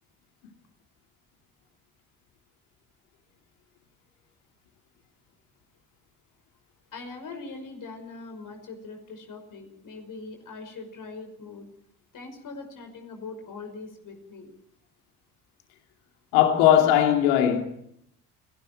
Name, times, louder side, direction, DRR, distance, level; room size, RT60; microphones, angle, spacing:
voice 1, 6.9-11.7 12.1-14.5, left 3 dB, 45° left, 5.6 m, -41 dB
voice 2, 16.3-17.6, left 10 dB, 65° left, 2.7 m, -19 dB
29.5 x 19.5 x 4.6 m
figure-of-eight pair, 50°, 43 cm